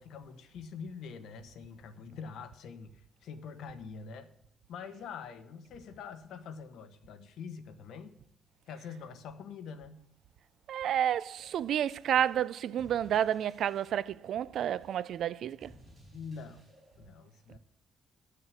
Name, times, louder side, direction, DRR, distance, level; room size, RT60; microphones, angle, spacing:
voice 1, 0.0-4.3 4.7-8.1 8.7-10.0 16.1-16.7 17.0-17.6, left 6 dB, 80° left, 1.3 m, -45 dB
voice 2, 10.7-15.7, right 10 dB, 60° right, 0.4 m, -30 dB
sound 1, 11.4-17.0, equal, 15° right, 4.5 m, -59 dB
12.5 x 6.6 x 7.0 m
cardioid pair, 175°, 0 cm